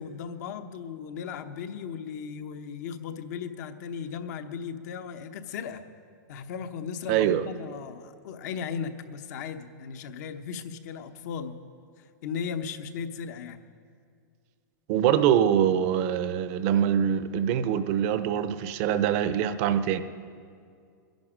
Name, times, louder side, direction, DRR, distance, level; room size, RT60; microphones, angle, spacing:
voice 1, 0.0-5.8 6.3-11.6 12.0-13.6, left 6 dB, 60° left, 8 dB, 1.0 m, -36 dB
voice 2, 7.1-7.5 14.9-20.0, right 9 dB, 45° right, 12 dB, 0.7 m, -24 dB
22.0 x 10.5 x 5.1 m, 2.3 s
supercardioid pair, 150°, 10 cm